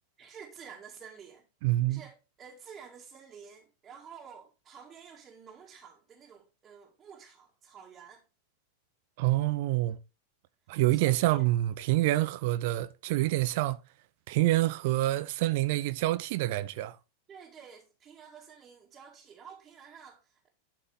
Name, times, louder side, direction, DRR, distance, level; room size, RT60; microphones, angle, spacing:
voice 1, 0.2-1.5 1.9-8.3 10.9-11.5 17.3-20.5, right 7 dB, 25° right, 2.2 m, -50 dB
voice 2, 1.6-2.0 9.2-10.0 10.7-13.8 14.3-17.0, right 17 dB, 50° right, 0.6 m, -27 dB
11.5 x 5.6 x 3.7 m
figure-of-eight pair, 90°, 0 cm